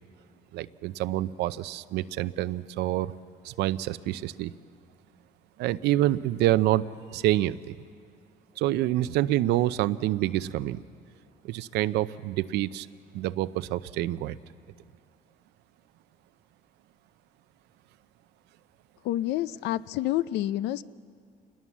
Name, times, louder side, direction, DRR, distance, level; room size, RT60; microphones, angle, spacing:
voice 1, 0.5-3.1 3.4-4.5 5.6-6.9 7.1-7.8 8.6-10.8 11.4-12.9 13.1-14.4, right 14 dB, 85° right, 15 dB, 0.6 m, -27 dB
voice 2, 19.0-20.8, left 14 dB, 85° left, 16 dB, 0.6 m, -28 dB
27.0 x 20.5 x 7.3 m, 2.3 s
cardioid pair, 110°, 17 cm